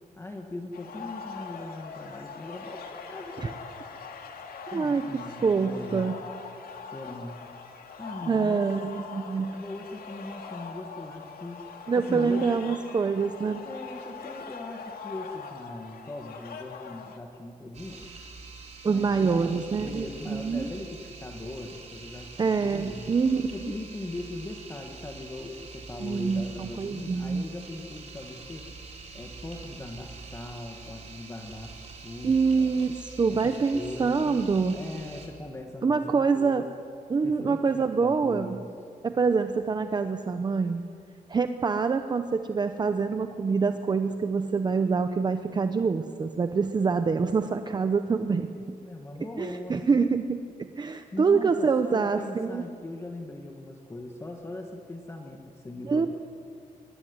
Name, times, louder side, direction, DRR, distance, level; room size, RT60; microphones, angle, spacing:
voice 1, 0.2-3.6 4.7-6.1 6.8-7.5 8.0-8.7 9.5-12.5 13.6-18.3 18.8-23.1 23.5-28.7 29.1-32.8 33.3-34.4 34.7-36.6 37.2-38.7 48.2-50.0 50.9-56.1, left 2 dB, 20° left, 3 dB, 1.6 m, -40 dB
sound 1, 0.7-17.2, left 5 dB, 85° left, 2.8 m, -42 dB
voice 2, 4.7-6.2 8.3-9.6 11.9-13.6 18.8-20.7 22.4-23.7 26.0-27.4 32.2-34.8 35.8-36.7 37.1-38.6 39.0-40.8 41.3-48.5 49.4-52.6 55.8-56.1, right 5 dB, 30° right, 8 dB, 0.8 m, -26 dB
sound 2, 17.7-35.3, right 4 dB, 50° right, 4.4 m, -45 dB
24.0 x 21.5 x 9.6 m, 2.4 s
wide cardioid pair, 175°, 15 cm